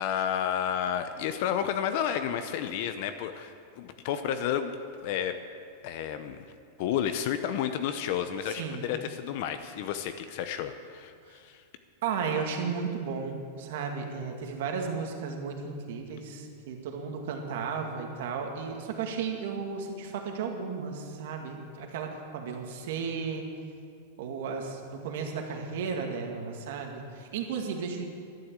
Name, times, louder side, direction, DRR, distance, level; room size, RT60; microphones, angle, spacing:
voice 1, 0.0-4.7 5.0-5.4 5.8-6.4 6.8-11.6, left 9 dB, 50° left, 9 dB, 0.6 m, -31 dB
voice 2, 8.5-8.8 11.2-11.3 12.0-23.5 24.2-28.1, right 5 dB, 65° right, 2 dB, 2.0 m, -34 dB
12.0 x 10.0 x 7.6 m, 2.3 s
supercardioid pair, 155°, 0 cm